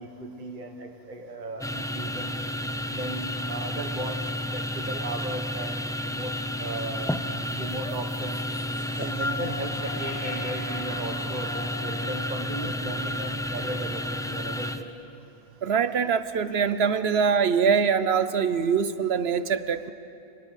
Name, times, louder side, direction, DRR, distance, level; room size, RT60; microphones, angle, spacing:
voice 1, 0.0-2.3 2.9-4.2 4.5-6.3 6.6-7.1 7.6-8.4 9.0-14.9, right 2 dB, 35° right, 3 dB, 1.6 m, -36 dB
sound 1, 1.6-14.8, left 1 dB, 5° left, 0.4 m, -31 dB
sound 2, 7.4-13.7, left 1 dB, 30° left, 4.4 m, -42 dB
voice 2, 15.6-19.9, right 6 dB, 55° right, 13 dB, 0.9 m, -23 dB
26.0 x 20.5 x 8.1 m, 2.7 s
omnidirectional pair, 1.5 m